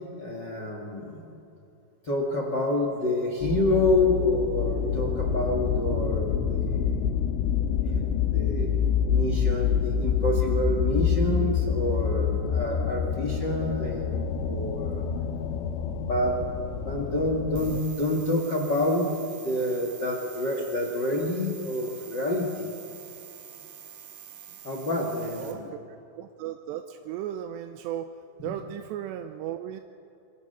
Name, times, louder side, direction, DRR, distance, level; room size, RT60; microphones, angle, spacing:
voice 1, 0.2-1.2 2.0-7.0 7.8-8.8 9.0-15.0 16.0-16.4 16.8-22.7 24.6-25.7 28.4-28.5, left 1 dB, 40° left, 2 dB, 1.6 m, -28 dB
sound 1, 3.4-17.8, left 7 dB, 90° left, 3.7 m, -27 dB
sound 2, 17.5-25.5, right 8 dB, 55° right, 3.4 m, -45 dB
voice 2, 25.9-28.1 28.4-29.8, right 11 dB, 80° right, 7 dB, 2.7 m, -35 dB
27.0 x 22.5 x 6.9 m, 2.9 s
omnidirectional pair, 5.4 m